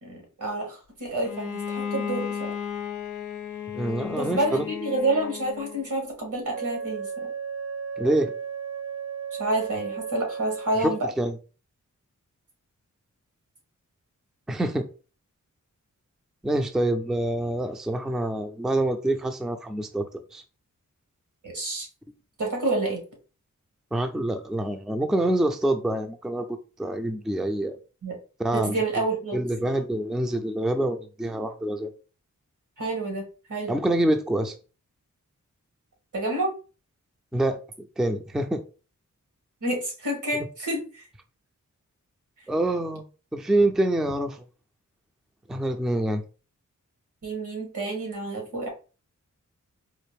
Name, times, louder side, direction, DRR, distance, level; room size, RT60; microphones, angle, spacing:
voice 1, 0.0-2.5 4.1-7.1 9.4-11.0 21.4-21.9 22.4-23.0 28.0-28.2 28.5-29.4 32.8-33.7 36.1-36.5 39.6-41.0 47.2-48.7, right 2 dB, 80° right, 1 dB, 1.9 m, -28 dB
Bowed string instrument, 1.2-5.9, left 7 dB, 70° left, 0.5 m, -34 dB
voice 2, 3.7-4.7 8.0-8.3 10.8-11.4 14.5-14.9 16.4-20.4 23.9-26.5 26.8-27.8 28.4-28.8 29.3-31.9 33.7-34.6 37.3-38.6 42.5-43.0 43.3-44.4 45.5-46.2, right 1 dB, ahead, 6 dB, 0.4 m, -26 dB
Wind instrument woodwind instrument, 6.5-11.1, right 6 dB, 40° right, 0.8 m, -35 dB
4.1 x 2.5 x 3.4 m, 0.34 s
wide cardioid pair, 90°, 31 cm